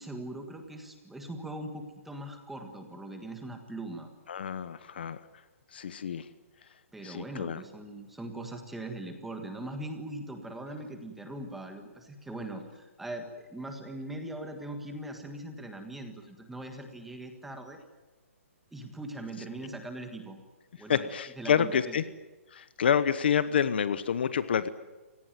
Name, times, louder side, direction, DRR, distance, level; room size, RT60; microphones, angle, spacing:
voice 1, 0.0-4.1 6.9-17.8 18.7-20.4 20.8-21.1 21.4-22.0, right 1 dB, ahead, 5 dB, 1.6 m, -41 dB
voice 2, 4.3-5.2 5.7-6.2 7.0-7.6 20.9-22.0 22.5-24.7, left 8 dB, 45° left, 14 dB, 1.0 m, -28 dB
28.5 x 18.0 x 9.2 m, 1.2 s
hypercardioid pair, 180°, 8 cm